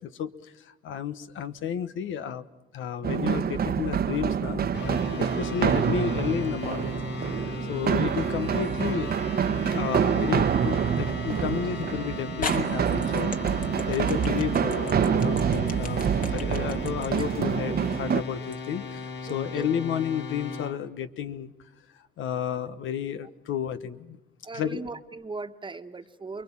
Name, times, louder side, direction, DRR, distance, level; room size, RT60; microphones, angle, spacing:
voice 1, 0.0-2.4 2.7-9.1 9.7-21.5 22.2-24.2 24.5-24.9, left 8 dB, 80° left, 11 dB, 1.2 m, -32 dB
sound 1, 3.0-18.2, right 8 dB, 50° right, 1.0 m, -27 dB
sound 2, 4.7-20.8, left 4 dB, 60° left, 2.5 m, -37 dB
voice 2, 7.6-7.9 17.2-17.3 17.6-17.8 19.3-19.7 24.4-26.4, right 3 dB, 25° right, 8 dB, 1.4 m, -38 dB
sound 3, 8.3-8.9 9.7-9.8 11.7-11.8 12.4-18.6, left 4 dB, 45° left, 2.3 m, -38 dB
28.5 x 22.0 x 7.4 m, 0.90 s
cardioid pair, 90°, 20 cm